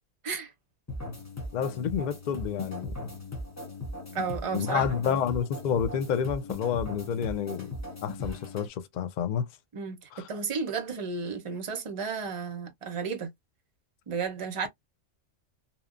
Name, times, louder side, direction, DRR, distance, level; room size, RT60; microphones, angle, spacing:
sound 1, 0.9-8.7, left 2 dB, 20° left, 0.6 m, -38 dB
voice 1, 1.5-3.0 4.5-7.7 8.0-9.4 10.1-10.2, left 8 dB, 65° left, 0.4 m, -29 dB
voice 2, 4.1-5.2 9.7-13.3 14.1-14.7, right 5 dB, 35° right, 0.5 m, -33 dB
2.8 x 2.0 x 2.4 m
omnidirectional pair, 1.3 m